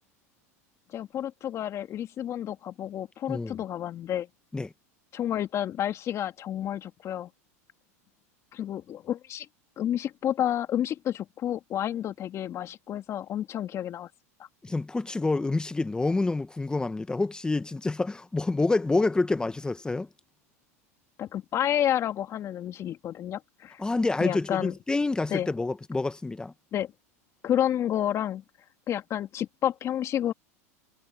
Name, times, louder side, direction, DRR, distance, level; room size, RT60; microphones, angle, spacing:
voice 1, 0.9-4.3 5.1-7.3 8.5-9.5 9.8-14.1 21.2-23.8 24.2-24.7 25.3-25.5 26.7-26.9 27.4-28.4 28.9-30.3, left 11 dB, 35° left, 2.7 m, -30 dB
voice 2, 14.6-20.1 23.8-26.5, left 3 dB, 10° left, 1.1 m, -27 dB
hypercardioid pair, 115°, 8 cm